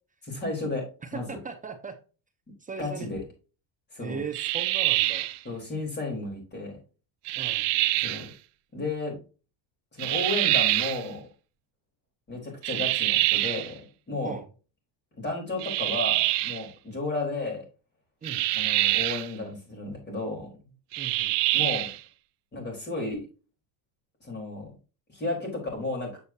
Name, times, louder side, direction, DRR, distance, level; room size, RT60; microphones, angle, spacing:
voice 1, 0.3-0.8 1.1-1.4 2.8-3.2 3.9-4.2 5.4-6.8 8.0-8.3 8.7-9.2 9.9-11.3 12.3-13.8 14.1-14.4 15.2-17.6 18.5-20.5 21.5-21.9 22.5-23.2 24.2-24.7 25.1-26.1, left 2 dB, 20° left, 0 dB, 3.9 m, -33 dB
voice 2, 1.0-1.9 2.6-3.1 4.0-5.3 7.4-7.7 14.2-14.4 18.2-18.5 21.0-21.4, right 5 dB, 15° right, 4 dB, 0.6 m, -38 dB
sound 1, 4.3-5.4 7.3-8.3 10.0-11.0 12.6-13.7 15.6-16.6 18.2-19.3 20.9-22.0, right 17 dB, 60° right, 0.7 m, -25 dB
8.3 x 6.7 x 2.8 m, 0.34 s
cardioid pair, 170°, 48 cm